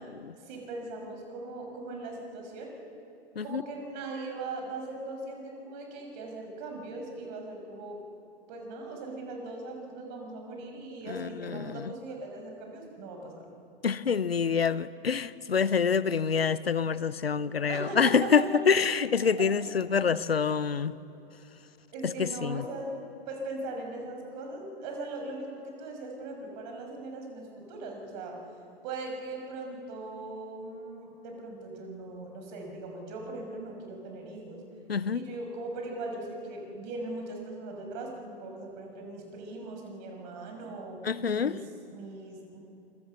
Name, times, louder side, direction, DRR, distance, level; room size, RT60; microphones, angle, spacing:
voice 1, 0.5-2.7 3.4-8.0 8.5-13.4 17.7-18.6 19.4-19.5 21.9-22.9 23.3-28.4 28.8-34.6 35.1-42.6, right 2 dB, 45° right, 6.1 m, -39 dB
voice 2, 11.1-11.7 13.8-20.9 22.2-22.6 34.9-35.2 41.0-41.6, left 6 dB, 80° left, 0.8 m, -26 dB
26.5 x 23.0 x 7.0 m
figure-of-eight pair, 100°, 30 cm